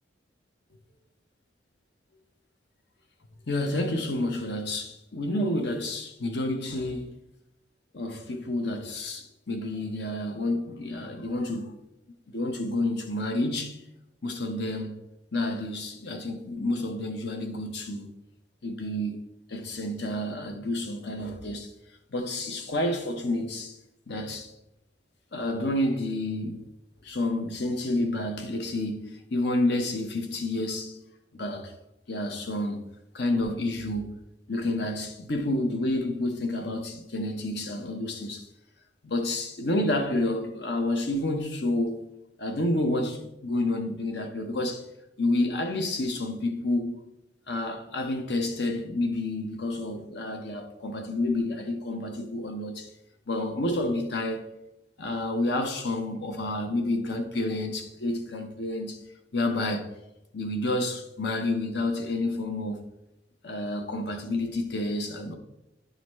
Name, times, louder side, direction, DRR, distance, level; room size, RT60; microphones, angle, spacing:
voice 1, 3.5-7.1 7.9-11.8 12.3-13.8 14.2-15.0 15.3-18.1 18.6-19.2 19.5-21.7 22.1-23.8 24.1-24.5 25.3-26.6 27.0-31.0 31.3-31.7 32.1-32.8 33.1-34.1 34.5-38.5 39.0-42.1 42.4-44.8 45.2-47.0 47.5-52.9 53.3-54.4 55.0-59.0 59.3-59.9 60.3-62.8 63.4-65.3, left 1 dB, 60° left, 1.0 m, -29 dB
11.0 x 3.9 x 3.1 m
head